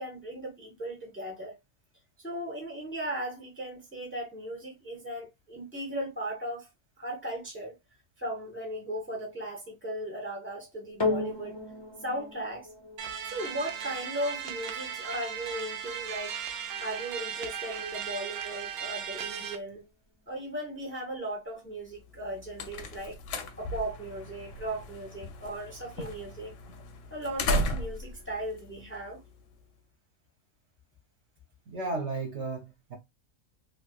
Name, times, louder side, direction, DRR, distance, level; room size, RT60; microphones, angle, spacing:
voice 1, 0.0-1.6 2.2-6.7 7.0-7.8 8.2-11.6 12.0-12.7 13.2-16.4 16.8-19.8 20.3-23.2 23.6-26.5 27.1-29.2, right 1 dB, 10° left, 0.7 m, -37 dB
sound 1, 11.0-19.6 20.3-20.4, left 2 dB, 40° left, 0.4 m, -38 dB
sound 2, 13.0-19.5, right 8 dB, 85° right, 1.1 m, -37 dB
sound 3, 22.1-29.5, left 1 dB, 70° left, 0.8 m, -36 dB
voice 2, 31.7-33.0, right 3 dB, 60° right, 0.9 m, -34 dB
3.2 x 2.8 x 2.3 m
omnidirectional pair, 1.5 m